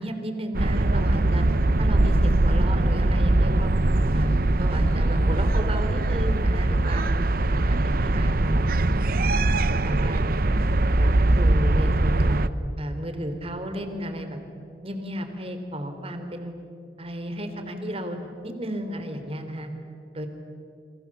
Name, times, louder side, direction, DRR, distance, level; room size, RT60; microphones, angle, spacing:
voice 1, 0.0-1.5 1.8-3.7 4.1-4.3 4.6-7.0 7.5-8.6 9.0-9.3 9.7-10.2 10.9-12.5 12.8-14.4 14.8-16.5 17.0-19.7 20.1-20.3, equal, 35° right, 7 dB, 3.3 m, -33 dB
sound 1, 0.5-12.5, right 2 dB, 55° right, 0.9 m, -21 dB
30.0 x 26.5 x 7.3 m, 2.6 s
head